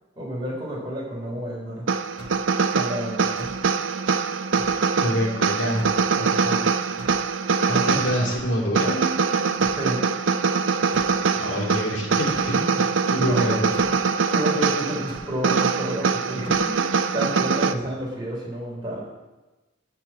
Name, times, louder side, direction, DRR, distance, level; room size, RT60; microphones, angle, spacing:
voice 1, 0.2-1.9 2.7-3.5 9.6-10.0 13.1-13.6 14.3-19.2, equal, 25° right, -4 dB, 3.9 m, -30 dB
sound 1, 1.9-17.7, right 5 dB, 75° right, 0.5 m, -23 dB
sound 2, 2.2-2.5 3.4-3.7 4.6-4.8 5.8-6.1 7.0-7.3 8.3-8.6 9.6-9.9 10.9-11.2 12.3-12.5 13.7-14.0 15.1-15.3 16.4-16.7, equal, 25° left, 1.5 m, -41 dB
voice 2, 5.0-6.7 7.7-9.1 11.3-12.8 13.1-14.0, equal, 70° left, -2 dB, 2.4 m, -26 dB
13.0 x 4.5 x 8.3 m, 1.1 s
head